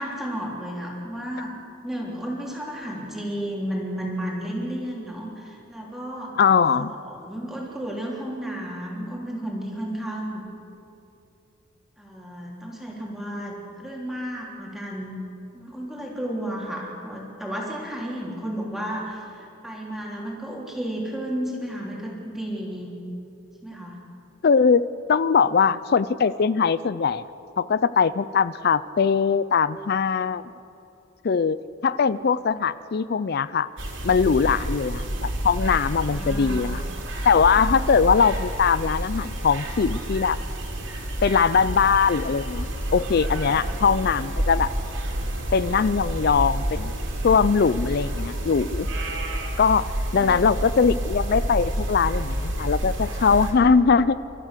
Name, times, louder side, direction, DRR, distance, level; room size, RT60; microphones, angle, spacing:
voice 1, 0.0-1.5 1.8-6.3 6.8-10.4 12.0-15.2 15.5-23.0 23.6-24.0 36.1-36.6 37.5-37.7 43.4-43.6 50.2-50.4, equal, ahead, -3 dB, 3.2 m, -33 dB
voice 2, 6.4-6.9 24.4-27.3 27.6-30.4 31.2-33.7 34.0-36.8 37.2-40.4 41.2-44.7 45.5-46.9 47.2-48.9 49.6-54.1, left 5 dB, 50° left, 16 dB, 0.4 m, -21 dB
sound 1, 33.8-53.5, right 1 dB, 65° right, 3.5 m, -29 dB
29.5 x 13.5 x 6.6 m, 2.8 s
head